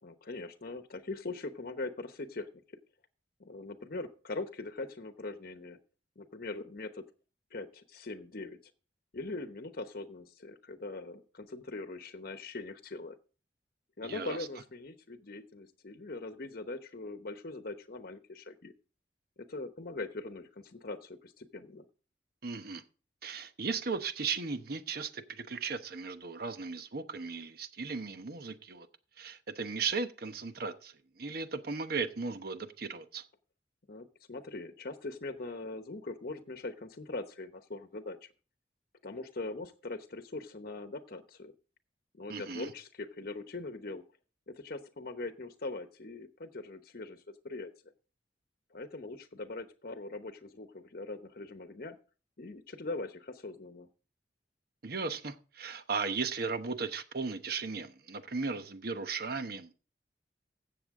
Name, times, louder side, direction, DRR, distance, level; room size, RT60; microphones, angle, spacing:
voice 1, 0.0-2.6 3.4-5.8 6.2-7.0 7.5-8.6 9.1-13.2 14.0-18.7 19.4-21.9 33.9-38.3 39.0-41.5 42.1-44.0 44.5-47.7 48.7-52.0 52.4-53.9, left 2 dB, 55° left, 0.9 m, -41 dB
voice 2, 14.0-14.4 22.4-22.8 23.2-28.9 29.2-33.2 42.3-42.7 54.8-59.7, right 4 dB, 60° right, 1.0 m, -36 dB
15.5 x 6.9 x 3.6 m
head